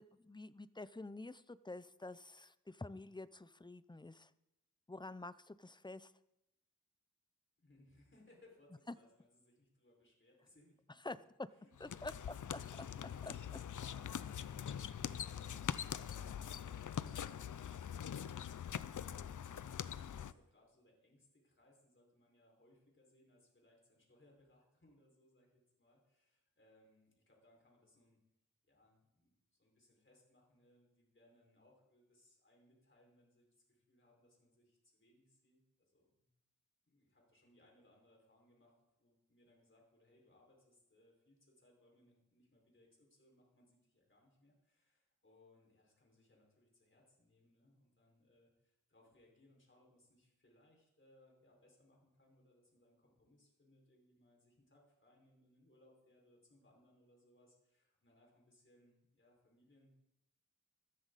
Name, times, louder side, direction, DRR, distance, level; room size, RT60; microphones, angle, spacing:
voice 1, 0.0-4.3 4.9-6.1 8.9-9.0 11.0-11.5 11.8-12.1 13.3-13.4, left 2 dB, 15° left, 15 dB, 0.6 m, -48 dB
voice 2, 7.6-11.2 11.5-28.2 28.6-36.3 36.8-60.0, left 1 dB, 40° left, -1 dB, 5.3 m, -69 dB
sound 1, 11.7-20.3, left 8 dB, 70° left, 0.6 m, -43 dB
20.0 x 13.5 x 4.1 m, 0.88 s
wide cardioid pair, 70°, 32 cm